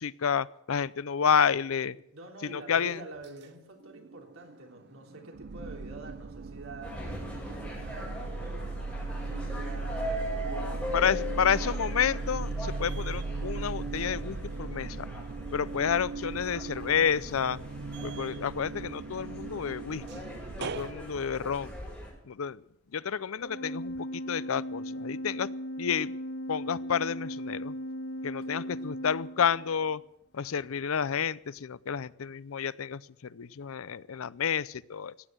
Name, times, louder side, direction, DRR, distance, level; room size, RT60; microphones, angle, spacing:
voice 1, 0.0-2.0 2.4-3.0 10.9-15.1 15.5-17.6 18.0-20.0 20.6-21.7 22.2-22.6 22.9-25.5 25.8-26.1 26.5-27.8 28.2-30.0 30.3-35.1, left 7 dB, 80° left, 19 dB, 0.5 m, -30 dB
voice 2, 2.1-7.0 7.3-8.8 9.1-11.6 20.7-21.1 28.5-29.0, right 2 dB, 80° right, 2 dB, 3.5 m, -47 dB
sound 1, 3.8-4.6 5.0-20.9, right 3 dB, 50° right, 0.6 m, -37 dB
sound 2, 6.8-22.1, left 1 dB, 5° left, 7.4 m, -40 dB
Organ, 23.4-30.0, equal, 50° left, 1.8 m, -37 dB
15.5 x 9.9 x 7.9 m, 0.79 s
head